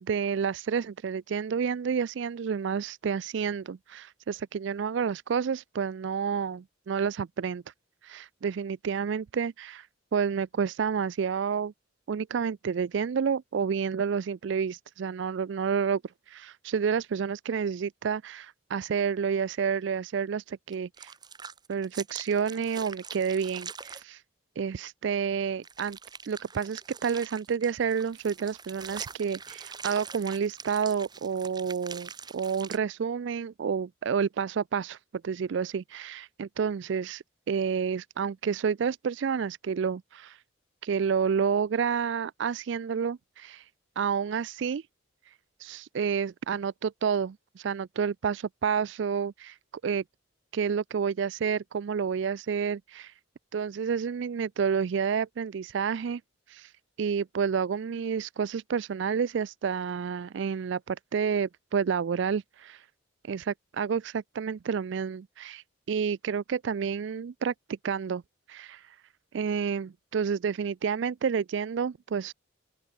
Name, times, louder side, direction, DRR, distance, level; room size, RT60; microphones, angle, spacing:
voice 1, 0.0-7.6 8.0-11.7 12.1-16.0 16.3-21.1 21.7-24.2 24.6-26.0 26.3-40.4 40.8-43.7 44.0-44.9 45.3-49.6 49.8-50.0 50.5-53.2 53.5-56.2 56.5-62.9 63.2-68.2 68.5-69.0 69.3-72.3, right 6 dB, 65° right, 0.4 m, -30 dB
sound 1, 20.7-24.0 25.6-32.8, right 6 dB, 20° right, 1.1 m, -43 dB
open air
head